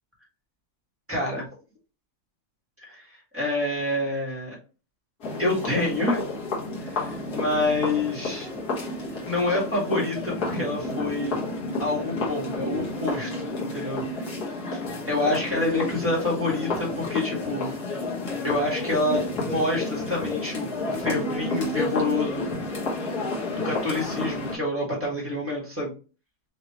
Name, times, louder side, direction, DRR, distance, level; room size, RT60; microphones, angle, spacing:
voice 1, 1.1-1.5 2.8-3.1 3.3-4.5 5.4-6.2 6.8-8.5 9.2-11.3 11.8-14.1 15.1-17.7 18.4-22.5 23.5-25.9, left 2 dB, 5° right, -5 dB, 1.0 m, -27 dB
sound 1, 5.2-24.6, left 2 dB, 50° left, 1.2 m, -31 dB
5.6 x 2.6 x 2.9 m, 0.34 s
omnidirectional pair, 3.5 m